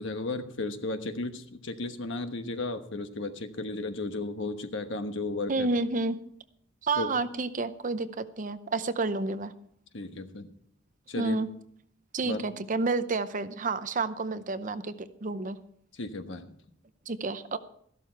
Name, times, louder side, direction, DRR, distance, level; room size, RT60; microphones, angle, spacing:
voice 1, 0.0-5.7 7.0-7.1 9.9-10.5 11.1-11.4 12.2-12.4 15.9-16.6, left 2 dB, 60° left, 8 dB, 1.2 m, -34 dB
voice 2, 5.5-6.2 6.8-9.5 11.2-11.5 12.1-15.6 17.1-17.6, right 3 dB, 40° right, 12 dB, 0.7 m, -30 dB
13.5 x 12.0 x 4.6 m, 0.67 s
head